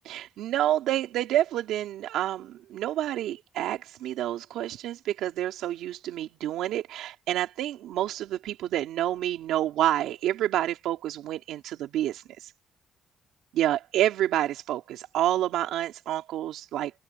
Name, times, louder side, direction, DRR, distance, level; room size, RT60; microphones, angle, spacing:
voice 1, 0.0-12.5 13.5-16.9, right 12 dB, 85° right, 3.1 m, -28 dB
cardioid pair, 90°, 0 cm